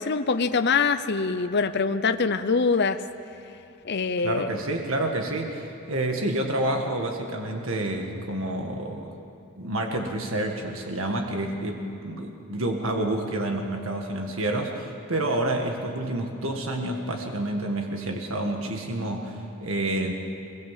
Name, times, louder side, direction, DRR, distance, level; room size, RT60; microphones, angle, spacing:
voice 1, 0.0-3.0 3.8-4.5, left 4 dB, 50° left, 10 dB, 0.7 m, -24 dB
voice 2, 4.2-9.1 9.6-20.1, right 1 dB, 70° right, 2 dB, 1.9 m, -29 dB
23.5 x 22.5 x 7.5 m, 2.8 s
head